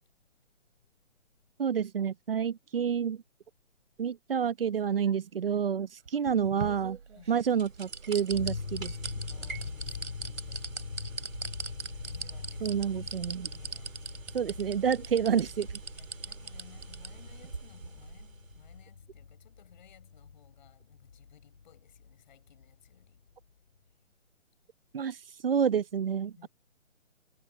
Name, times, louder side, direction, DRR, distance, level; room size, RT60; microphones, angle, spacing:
voice 1, 1.6-3.2 4.0-7.0 7.3-8.9 12.6-13.6 14.3-15.8 24.9-25.2 25.4-26.5, right 7 dB, 45° right, 1.0 m, -29 dB
sound 1, 6.1-7.4 7.8-17.1 17.4-17.5, right 4 dB, 60° right, 4.3 m, -39 dB
sound 2, 7.1-18.9, right 4 dB, 75° right, 3.1 m, -46 dB
sound 3, 8.3-23.2, left 5 dB, 65° left, 3.4 m, -43 dB
voice 2, 9.3-11.1 12.0-12.9 13.5-14.0 15.9-23.2 26.4-26.5, left 10 dB, 35° left, 7.5 m, -59 dB
figure-of-eight pair, 155°, 39 cm